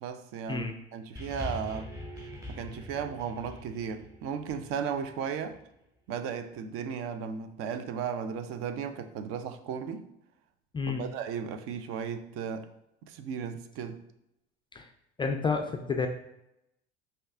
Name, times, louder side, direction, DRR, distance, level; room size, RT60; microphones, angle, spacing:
voice 1, 0.0-1.9 2.2-5.6 6.1-10.0 10.9-12.7 13.1-14.0, right 7 dB, 45° right, 0.5 m, -35 dB
sound 1, 1.2-5.7 6.5-6.6, left 1 dB, 10° right, 1.3 m, -43 dB
voice 2, 15.2-16.1, left 4 dB, 15° left, 0.3 m, -30 dB
5.2 x 2.8 x 3.4 m
figure-of-eight pair, 65°, 31 cm